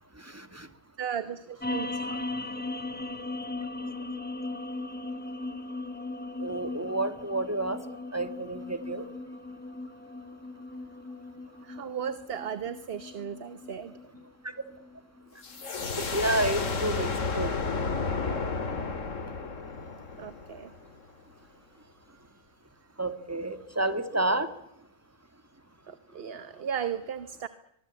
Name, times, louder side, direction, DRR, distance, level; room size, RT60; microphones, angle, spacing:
voice 1, 0.2-0.7 2.1-2.2 6.4-7.8 8.1-9.1 14.4-14.5 16.0-17.5 23.0-24.5, right 1 dB, 10° right, 10 dB, 1.9 m, -30 dB
voice 2, 1.0-2.0 11.6-13.9 20.2-20.7 25.9-27.5, right 8 dB, 50° right, 12 dB, 1.2 m, -35 dB
sound 1, 1.6-16.2, left 2 dB, 5° left, 1.5 m, -38 dB
sound 2, 15.4-21.0, left 4 dB, 70° left, 2.4 m, -32 dB
23.5 x 22.0 x 8.3 m, 0.83 s
omnidirectional pair, 1.4 m